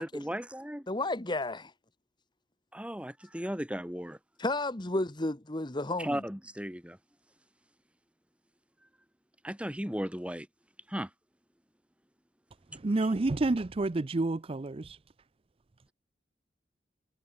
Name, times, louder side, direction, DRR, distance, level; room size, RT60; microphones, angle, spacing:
voice 1, 0.0-0.9 2.7-4.2 6.0-7.0 9.4-10.5 10.9-11.1, equal, 5° right, 4.8 m, -36 dB
voice 2, 0.9-1.7 4.4-6.2, left 2 dB, 25° left, 1.4 m, -32 dB
voice 3, 12.7-15.0, right 2 dB, 35° right, 0.5 m, -29 dB
head